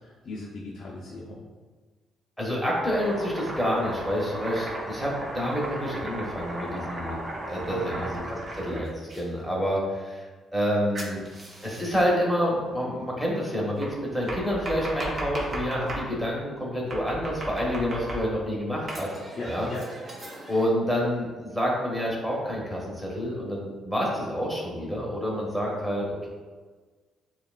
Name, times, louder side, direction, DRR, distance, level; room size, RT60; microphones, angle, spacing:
voice 1, 0.0-1.4 7.6-8.0 19.4-19.9, left 2 dB, 60° left, -4 dB, 0.6 m, -38 dB
voice 2, 2.4-7.2 7.4-10.3 10.5-11.2 11.6-19.1 19.4-19.7 20.5-26.3, equal, ahead, -4 dB, 1.3 m, -28 dB
Domestic sounds home sounds, 2.8-9.2 11.0-12.1 13.8-16.1 16.9-18.5 18.9-20.7, right 1 dB, 40° right, 0.9 m, -36 dB
6.7 x 2.4 x 2.4 m, 1.4 s
cardioid pair, 90°, 0 cm